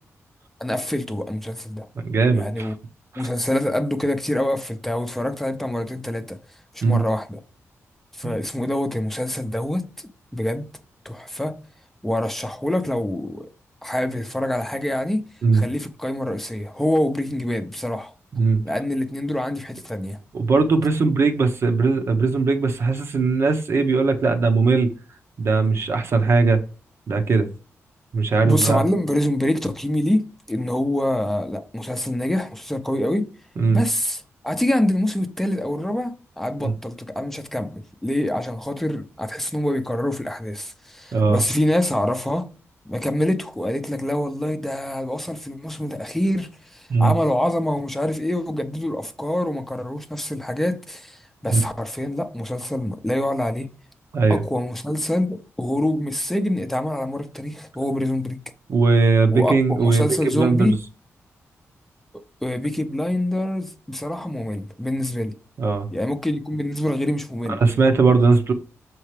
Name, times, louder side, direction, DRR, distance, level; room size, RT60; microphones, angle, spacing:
voice 1, 0.6-1.9 2.3-2.7 3.2-6.4 6.7-7.4 8.1-9.9 10.3-10.7 11.0-11.6 12.0-13.5 13.8-15.2 15.5-18.1 18.6-20.2 28.4-33.3 33.7-42.5 42.9-53.7 54.3-58.4 59.3-60.7 62.4-65.3 65.9-67.6, left 1 dB, 5° left, 0.7 m, -25 dB
voice 2, 2.0-2.7 3.1-3.3 6.8-7.0 8.2-8.3 15.4-15.6 18.3-18.6 20.3-24.9 25.4-26.6 27.1-27.5 28.1-28.8 33.6-33.8 36.6-36.7 41.1-41.4 46.9-47.1 51.5-51.6 54.1-54.4 58.7-60.7 65.6-65.9 67.5-68.5, right 4 dB, 55° right, 1.1 m, -19 dB
7.0 x 4.6 x 3.3 m
wide cardioid pair, 130°, 5 cm